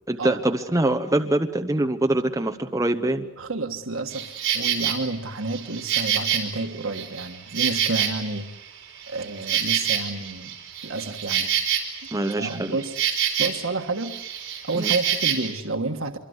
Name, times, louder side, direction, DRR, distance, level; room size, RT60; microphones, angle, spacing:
voice 1, 0.1-3.3 12.1-12.8 14.7-14.9, right 1 dB, 15° right, 6 dB, 0.9 m, -24 dB
voice 2, 3.4-8.5 9.1-10.5 10.8-11.5 12.4-12.9 13.4-14.2 14.6-16.2, right 3 dB, 85° right, 5 dB, 1.5 m, -30 dB
Insect, 4.1-5.0 5.5-8.5 8.8-13.7 14.0-15.5, right 9 dB, 60° right, 4.6 m, -27 dB
26.0 x 24.0 x 8.0 m, 0.85 s
head